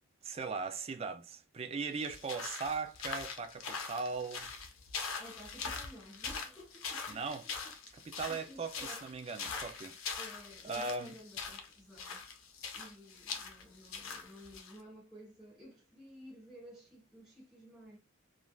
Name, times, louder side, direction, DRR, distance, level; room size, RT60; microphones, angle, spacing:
voice 1, 0.2-4.5 7.1-7.5 7.9-10.0 10.6-11.1, right 4 dB, 30° right, 0.3 m, -39 dB
sound 1, 2.0-14.8, left 5 dB, 80° left, 0.7 m, -42 dB
voice 2, 5.2-7.2 8.3-9.0 10.2-12.3 12.7-18.0, equal, 5° right, 1.0 m, -53 dB
3.2 x 2.5 x 2.3 m
head